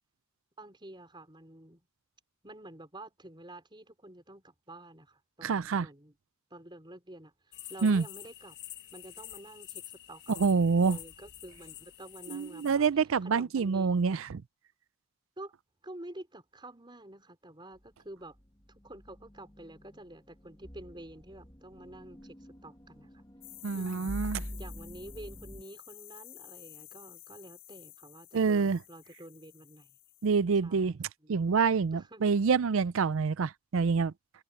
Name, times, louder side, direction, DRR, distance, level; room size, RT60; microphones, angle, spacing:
voice 1, 0.6-1.8 2.4-6.1 6.5-8.6 8.9-10.4 10.8-12.9 13.2-13.9 15.4-15.5 15.8-18.4 18.7-22.3 22.6-23.2 23.7-24.1 24.5-29.9 30.6-31.0 31.2-31.3 31.9-32.3, right 1 dB, 20° right, 4.5 m, -49 dB
voice 2, 5.4-5.9 7.8-8.1 10.3-11.0 12.3-14.4 23.6-24.4 28.3-28.8 30.2-34.1, right 5 dB, 70° right, 0.5 m, -27 dB
sound 1, 7.5-12.7, left 12 dB, 50° left, 1.5 m, -48 dB
sound 2, 18.4-25.6, equal, 20° left, 1.7 m, -46 dB
sound 3, 23.4-30.3, left 17 dB, 75° left, 6.9 m, -52 dB
head